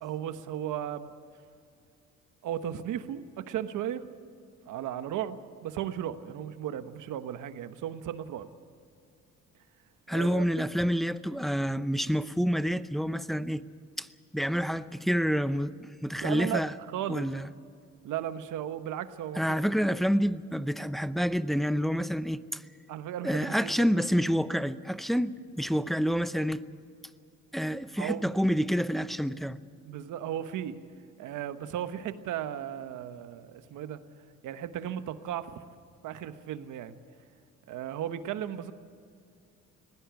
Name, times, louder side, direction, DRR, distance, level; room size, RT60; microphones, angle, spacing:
voice 1, 0.0-1.1 2.4-4.1 4.6-8.5 10.1-10.6 16.2-16.6 16.9-17.3 18.0-19.6 22.9-23.9 28.0-28.3 29.8-30.8 31.2-34.0 34.4-35.6 36.0-37.0 37.7-38.7, right 10 dB, 85° right, 1.1 m, -35 dB
voice 2, 10.1-13.6 14.0-14.1 14.3-15.7 16.0-16.7 17.1-17.5 19.4-22.6 23.2-26.6 27.5-29.6, equal, ahead, 0.7 m, -28 dB
20.5 x 16.5 x 8.2 m
cardioid pair, 90°, 30 cm